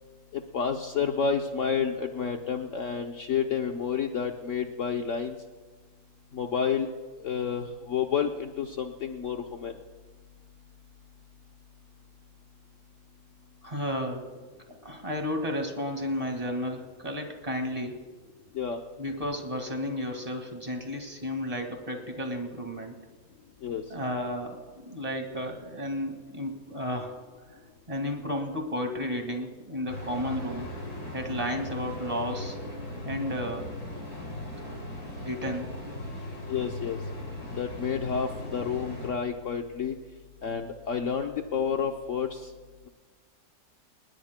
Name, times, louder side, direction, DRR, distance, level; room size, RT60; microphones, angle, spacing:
voice 1, 0.3-5.4 6.3-6.9 7.2-9.7 18.5-18.8 23.6-23.8 36.5-37.0 37.6-39.9 40.4-42.5, left 7 dB, 60° left, 4 dB, 1.0 m, -30 dB
voice 2, 13.6-14.3 14.8-18.0 19.0-23.0 23.9-27.2 27.5-27.6 27.9-30.7 31.1-32.6 33.0-33.7 35.2-35.8, left 1 dB, 20° right, 3 dB, 1.9 m, -33 dB
sound 1, 29.9-39.1, left 1 dB, 75° left, 5.9 m, -38 dB
27.5 x 20.0 x 2.2 m, 1.4 s
omnidirectional pair, 1.7 m